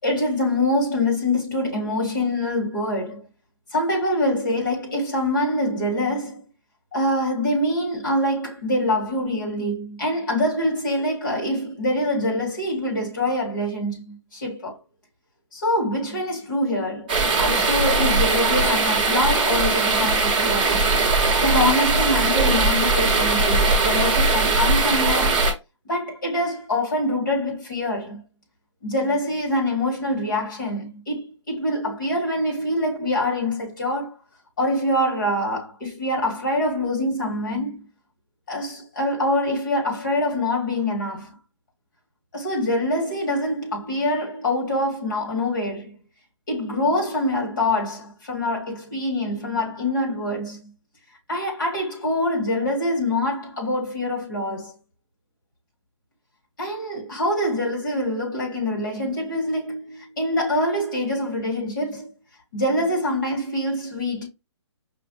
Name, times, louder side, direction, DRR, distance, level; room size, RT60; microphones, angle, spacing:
voice 1, 0.0-3.2 3.7-6.4 6.9-14.8 15.5-20.8 21.4-25.4 25.9-28.2 28.8-34.2 34.6-37.9 38.5-41.4 42.3-46.0 46.5-50.7 51.3-54.8 56.6-62.1 62.5-64.3, left 1 dB, 40° left, 1.8 m, -25 dB
sound 1, 17.1-25.5, right 3 dB, 20° right, 0.9 m, -20 dB
5.5 x 2.1 x 2.7 m
hypercardioid pair, 175°, 16 cm